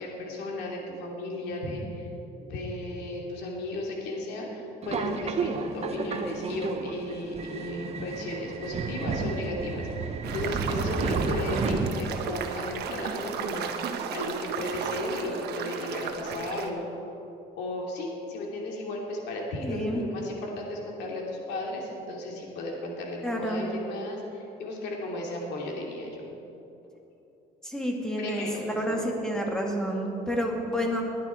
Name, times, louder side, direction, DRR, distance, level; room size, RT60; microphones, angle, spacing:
voice 1, 0.0-2.1 2.4-16.8 17.6-26.3 28.2-29.0, left 1 dB, 85° left, -1 dB, 3.0 m, -35 dB
Subway metro underground, 4.8-12.4, right 4 dB, 40° right, 1.2 m, -32 dB
sound 1, 10.2-16.7, right 6 dB, 70° right, 1.2 m, -34 dB
voice 2, 19.6-20.0 23.2-23.6 27.6-31.0, equal, 5° left, 0 dB, 2.5 m, -29 dB
20.5 x 11.0 x 4.6 m, 2.9 s
cardioid pair, 110°, 17 cm